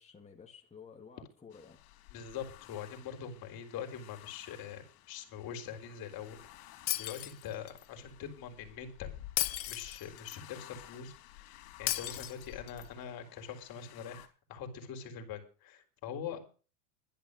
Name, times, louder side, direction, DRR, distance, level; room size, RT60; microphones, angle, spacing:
voice 1, 0.0-1.8, left 6 dB, 15° left, 0 dB, 2.4 m, -53 dB
sound 1, 1.5-14.3, left 14 dB, 65° left, 3.9 m, -54 dB
voice 2, 2.1-9.1 9.7-16.4, left 7 dB, 45° left, 5 dB, 4.1 m, -44 dB
Shatter, 6.9-7.8 9.4-10.4 11.9-12.9, left 14 dB, 90° left, 1.1 m, -35 dB
12.0 x 10.5 x 6.6 m, 0.36 s
supercardioid pair, 110°, 49 cm